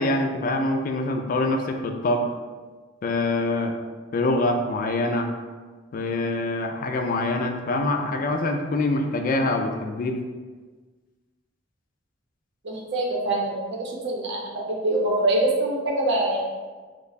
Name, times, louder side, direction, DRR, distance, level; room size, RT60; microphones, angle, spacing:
voice 1, 0.0-2.3 3.0-3.7 4.1-5.3 5.9-10.2, left 2 dB, 45° left, 5 dB, 0.3 m, -25 dB
voice 2, 12.6-16.4, right 2 dB, 60° right, -2 dB, 0.7 m, -24 dB
2.9 x 2.2 x 3.9 m, 1.4 s
head